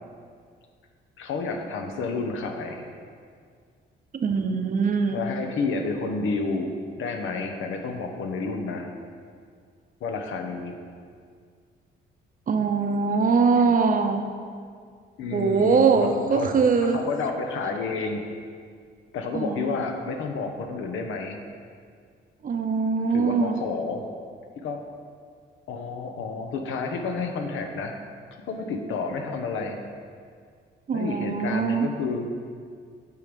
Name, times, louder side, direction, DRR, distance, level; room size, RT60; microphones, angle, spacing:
voice 1, 1.2-2.8 5.1-6.7 7.0-8.9 10.0-10.8 15.2-16.5 16.8-18.2 19.1-21.4 23.1-24.1 24.6-24.8 25.7-27.9 28.5-29.8 30.9-32.3, left 4 dB, 80° left, 4 dB, 0.9 m, -30 dB
voice 2, 4.2-5.2 12.5-14.2 15.3-17.0 19.3-19.7 22.4-23.6 30.9-31.9, right 5 dB, 45° right, 6 dB, 0.7 m, -22 dB
8.4 x 4.8 x 5.2 m, 2.1 s
cardioid pair, 90°, 20 cm